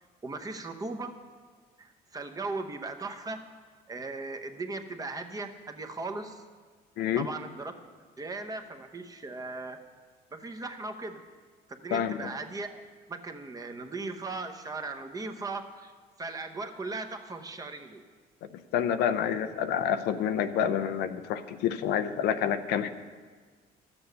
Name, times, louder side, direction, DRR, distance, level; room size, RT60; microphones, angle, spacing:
voice 1, 0.2-1.2 1.8-3.4 3.9-6.4 7.1-7.7 8.2-9.8 10.3-11.2 11.7-12.8 13.1-15.9 16.2-18.0, right 3 dB, 20° right, 5 dB, 0.9 m, -38 dB
voice 2, 7.0-7.3 11.9-12.3 18.7-22.9, left 9 dB, 90° left, 10 dB, 0.6 m, -28 dB
12.5 x 7.0 x 6.7 m, 1.5 s
cardioid pair, 110°, 17 cm